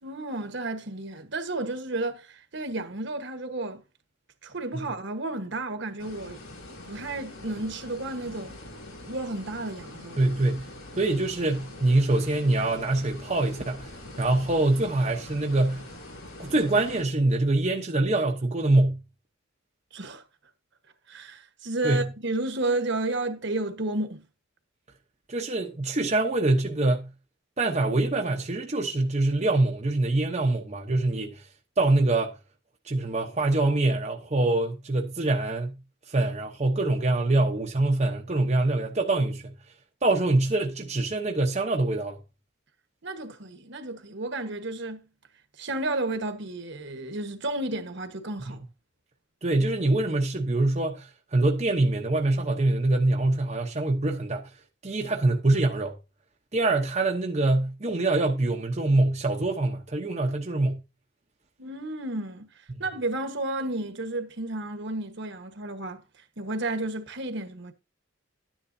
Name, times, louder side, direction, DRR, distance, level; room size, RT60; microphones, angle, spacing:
voice 1, 0.0-3.8 4.4-6.4 6.9-8.6 9.1-10.3 19.9-20.2 21.1-24.2 43.0-45.1 45.6-48.6 61.6-62.5 62.8-66.0 66.4-67.7, right 2 dB, 60° right, 1.3 m, -32 dB
sound 1, 6.0-17.0, left 1 dB, 80° left, 6.3 m, -44 dB
voice 2, 10.2-10.7 11.0-13.9 14.2-15.9 16.4-19.0 21.8-22.1 25.3-27.1 27.6-31.5 31.8-32.3 32.8-35.8 36.1-39.5 40.0-42.2 48.5-48.6 49.4-54.5 54.8-55.9 56.5-60.8, right 2 dB, 35° right, 0.9 m, -24 dB
12.0 x 9.9 x 2.7 m
head